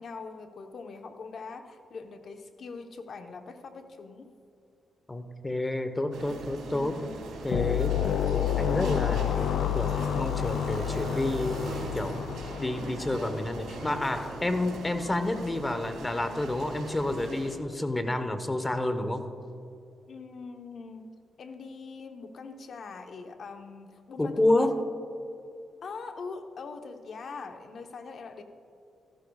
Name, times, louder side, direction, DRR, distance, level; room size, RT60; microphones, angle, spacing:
voice 1, 0.0-4.3 20.1-21.0 21.4-24.7 25.8-28.4, left 4 dB, 65° left, 6 dB, 1.0 m, -42 dB
voice 2, 5.1-7.0 7.4-8.0 8.3-9.4 9.7-12.2 12.6-19.3 24.2-24.8, left 1 dB, 20° left, 9 dB, 1.0 m, -29 dB
sound 1, 6.1-17.5, right 2 dB, 80° right, 2.5 m, -40 dB
sound 2, 7.5-14.0, left 10 dB, 80° left, 0.4 m, -30 dB
sound 3, 7.7-12.1, right 4 dB, 60° right, 1.9 m, -44 dB
14.5 x 13.0 x 2.4 m, 2.7 s
cardioid pair, 75°, 0 cm